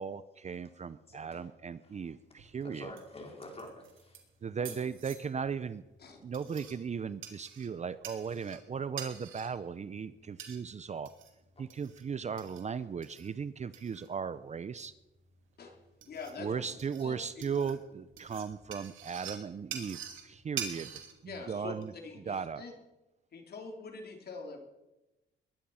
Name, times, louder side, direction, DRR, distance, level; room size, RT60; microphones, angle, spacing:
voice 1, 0.0-2.9 4.4-5.8 6.2-11.1 11.6-14.9 16.4-20.0 20.2-21.9 22.3-22.6, right 6 dB, 35° right, 15 dB, 0.6 m, -37 dB
voice 2, 1.1-1.5 1.8-2.1 2.6-4.2 4.6-4.8 16.3-16.7 17.0-17.2 21.5-21.6, left 1 dB, 30° left, 1 dB, 5.0 m, -49 dB
sound 1, 2.2-21.8, right 8 dB, 80° right, 2.9 m, -47 dB
voice 3, 16.1-16.6 17.0-17.2 17.5-17.7 21.3-22.7 23.3-24.6, left 4 dB, 55° left, 2 dB, 3.5 m, -44 dB
21.0 x 11.0 x 5.7 m, 0.98 s
cardioid pair, 90°, 20 cm